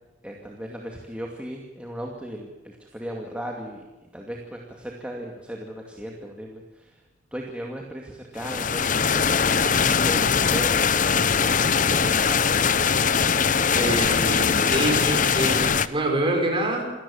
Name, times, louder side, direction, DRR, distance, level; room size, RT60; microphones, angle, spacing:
voice 1, 0.2-3.8 4.1-7.0 7.3-11.0 11.3-12.4, equal, 5° right, 0 dB, 2.4 m, -36 dB
sound 1, 8.4-15.9, left 6 dB, 40° left, 0.8 m, -21 dB
voice 2, 13.7-16.9, right 1 dB, 25° right, 2 dB, 5.7 m, -26 dB
28.0 x 18.0 x 7.3 m, 1.2 s
head